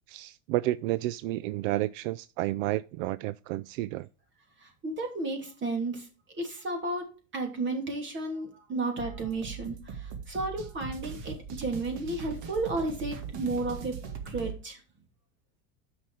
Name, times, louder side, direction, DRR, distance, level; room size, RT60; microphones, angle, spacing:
voice 1, 0.1-4.1, right 16 dB, 75° right, 0.5 m, -31 dB
voice 2, 4.6-6.1 6.3-7.1 7.3-14.0 14.2-14.8, right 2 dB, 30° right, 3.0 m, -33 dB
where you go, 9.0-14.6, right 6 dB, 50° right, 2.0 m, -40 dB
9.6 x 6.0 x 4.8 m
supercardioid pair, 140°, 40 cm